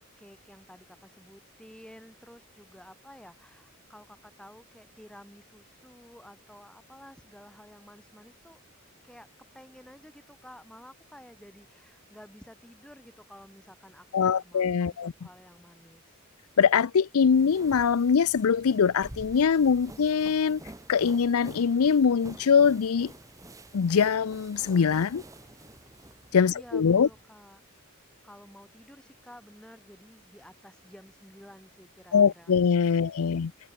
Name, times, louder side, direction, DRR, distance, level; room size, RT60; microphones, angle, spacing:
voice 1, 0.2-9.3 9.5-16.3 26.4-32.5 33.0-33.4, equal, 5° left, 7.7 m, -52 dB
voice 2, 14.1-15.1 16.6-20.6 20.9-23.1 23.7-25.2 26.3-27.1 32.1-33.5, left 6 dB, 80° left, 0.5 m, -23 dB
sound 1, 17.2-27.2, right 1 dB, 15° right, 1.2 m, -49 dB
head